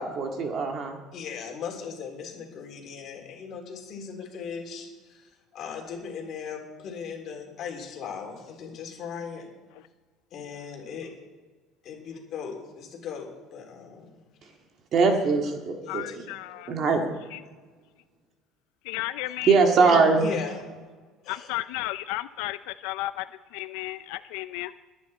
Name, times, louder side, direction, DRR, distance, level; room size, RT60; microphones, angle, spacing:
voice 1, 0.0-1.0 14.9-16.0 16.7-17.1 19.5-20.3, right 4 dB, 40° right, 4 dB, 2.0 m, -21 dB
voice 2, 1.1-9.5 10.3-11.1 11.8-14.2 15.8-16.2 20.2-20.6 21.2-21.5, left 6 dB, 45° left, 1 dB, 3.4 m, -38 dB
voice 3, 15.9-16.7 17.3-17.4 18.8-19.6 21.3-24.7, left 17 dB, 85° left, 14 dB, 0.4 m, -33 dB
21.5 x 9.7 x 4.3 m, 1.4 s
cardioid pair, 150°, 0 cm